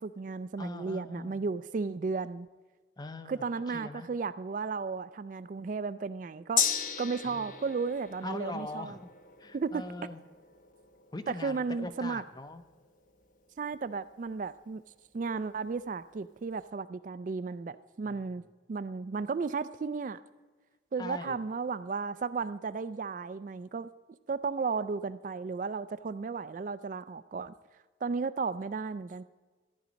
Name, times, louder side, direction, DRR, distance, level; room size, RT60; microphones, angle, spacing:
voice 1, 0.0-2.5 3.3-6.7 7.0-8.9 9.5-9.8 11.3-12.2 13.6-14.8 15.1-18.4 18.7-20.2 20.9-23.9 24.3-27.5 28.0-29.2, right 4 dB, 40° right, 14 dB, 0.3 m, -34 dB
voice 2, 0.6-1.4 3.0-4.1 7.2-7.5 8.2-9.1 9.4-10.2 11.1-12.6 18.0-18.3 21.0-21.4, left 2 dB, 20° left, 11 dB, 0.6 m, -42 dB
Gong, 6.6-14.3 14.7-14.8, left 8 dB, 45° left, 0.9 m, -37 dB
14.0 x 10.0 x 5.1 m, 1.3 s
head